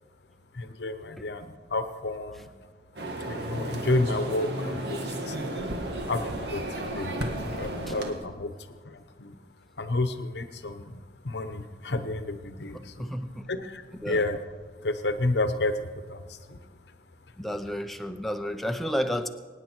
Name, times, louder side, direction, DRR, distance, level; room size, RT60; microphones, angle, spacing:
voice 1, 0.5-2.5 3.3-5.4 6.1-7.1 7.6-8.5 8.8-9.3 9.8-13.1 13.5-14.4 14.8-16.6, left 2 dB, 75° left, 10 dB, 1.0 m, -31 dB
sound 1, 3.0-8.1, right 1 dB, 75° right, 1.7 m, -33 dB
voice 2, 12.7-13.5 14.0-14.2 17.4-19.3, equal, ahead, 6 dB, 0.6 m, -31 dB
23.5 x 9.8 x 4.5 m, 1.5 s
head